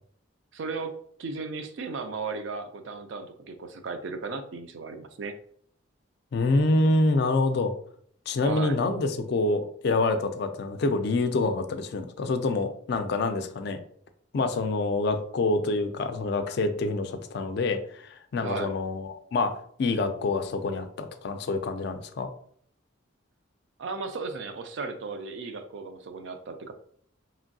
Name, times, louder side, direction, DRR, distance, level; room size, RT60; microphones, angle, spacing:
voice 1, 0.5-5.3 8.4-8.8 18.4-18.7 23.8-26.7, right 4 dB, 65° right, 8 dB, 0.4 m, -35 dB
voice 2, 6.3-7.7 8.3-13.8 14.3-19.5 19.8-22.3, left 2 dB, 55° left, 8 dB, 0.3 m, -26 dB
3.0 x 2.6 x 2.6 m, 0.62 s
head